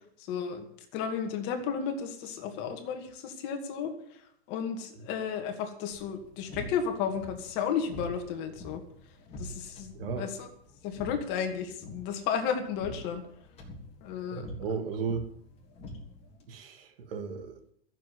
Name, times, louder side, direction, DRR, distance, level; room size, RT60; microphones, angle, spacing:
voice 1, 0.2-0.6 0.9-3.9 4.5-8.8 9.4-9.9 10.2-10.5 10.8-13.2 14.0-14.4, left 7 dB, 35° left, 5 dB, 2.4 m, -33 dB
sound 1, 5.9-16.5, left 1 dB, 20° left, 3.5 m, -46 dB
voice 2, 9.9-10.3 14.3-15.3 16.5-17.7, right 5 dB, 70° right, 7 dB, 2.5 m, -35 dB
14.5 x 7.4 x 9.6 m, 0.67 s
supercardioid pair, 160°, 30 cm